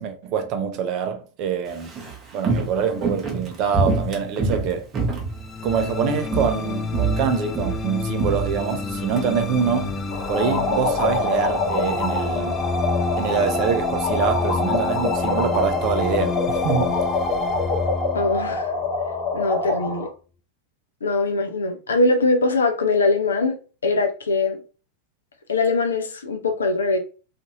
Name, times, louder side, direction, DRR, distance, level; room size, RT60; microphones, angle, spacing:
voice 1, 0.0-1.9 2.3-4.9 5.6-12.5 13.2-17.0, right 7 dB, 40° right, 0.5 m, -25 dB
Walk footsteps, 1.7-6.0 6.3-6.6 6.9-9.2 9.5-9.6, right 4 dB, 25° right, 0.8 m, -26 dB
sound 1, 5.3-19.7, left 4 dB, 25° left, 0.4 m, -30 dB
sound 2, 10.1-20.1, left 3 dB, 45° left, 0.9 m, -25 dB
voice 2, 18.1-18.7 19.3-20.1 21.0-24.6 25.5-27.0, left 3 dB, 70° left, 0.5 m, -22 dB
2.6 x 2.4 x 2.8 m
figure-of-eight pair, 90°, 0 cm